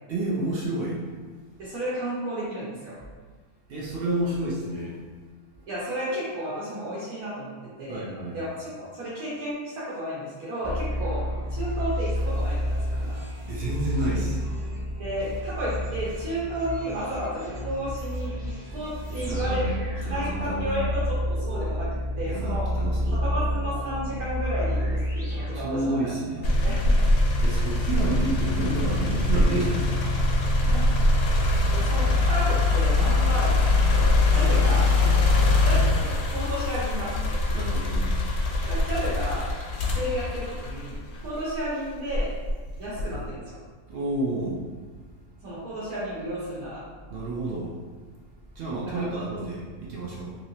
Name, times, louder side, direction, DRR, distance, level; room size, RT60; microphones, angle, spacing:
voice 1, 0.1-1.0 3.7-5.0 7.9-8.4 13.5-14.4 19.1-19.7 20.0-20.8 22.3-23.2 25.4-26.5 27.4-30.3 34.6-34.7 37.5-38.1 43.9-44.6 47.1-47.8 48.5-50.3, right 2 dB, 65° right, -4 dB, 0.6 m, -30 dB
voice 2, 1.6-2.9 5.7-7.5 7.8-8.1 8.3-11.2 11.5-13.2 15.0-19.6 20.1-21.9 22.2-22.7 23.0-26.0 26.6-27.0 27.4-27.5 30.7-30.8 31.7-34.9 35.6-37.4 38.6-39.5 39.9-42.3 42.8-43.6 45.4-46.8 48.9-49.2, equal, 85° right, -9 dB, 1.3 m, -32 dB
sound 1, 10.6-26.2, equal, 10° right, 0.7 m, -30 dB
sound 2, 26.4-41.5 42.1-43.3, left 2 dB, 65° left, 0.7 m, -23 dB
3.0 x 2.8 x 2.7 m, 1.4 s
omnidirectional pair, 1.5 m